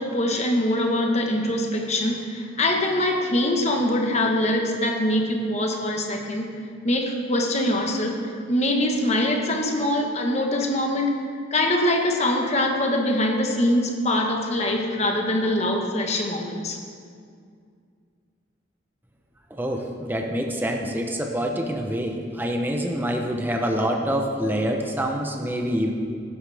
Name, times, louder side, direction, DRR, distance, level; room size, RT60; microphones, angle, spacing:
voice 1, 0.0-6.6 6.8-11.2 11.5-16.8, left 1 dB, 35° left, 2 dB, 1.4 m, -23 dB
voice 2, 19.5-25.9, equal, 10° right, 1 dB, 0.9 m, -26 dB
15.5 x 11.5 x 3.5 m, 2.2 s
head